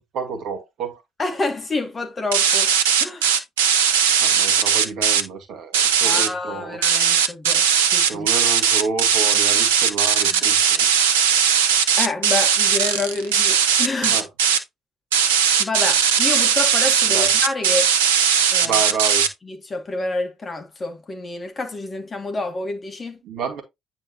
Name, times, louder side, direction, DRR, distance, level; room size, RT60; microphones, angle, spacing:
voice 1, 0.0-1.0 4.2-6.8 8.1-10.9 14.0-14.3 17.1-17.3 18.6-19.3 23.2-23.6, right 5 dB, 55° right, 1.8 m, -29 dB
voice 2, 1.2-2.7 3.0-3.3 6.0-8.3 12.0-14.2 15.6-17.9 18.5-18.8 19.4-23.2, left 3 dB, 30° left, 2.2 m, -28 dB
sound 1, 2.3-5.2 5.7-6.3 6.8-14.6 15.1-19.3, right 7 dB, 75° right, 0.7 m, -18 dB
9.5 x 4.4 x 2.9 m
figure-of-eight pair, 50°, 0 cm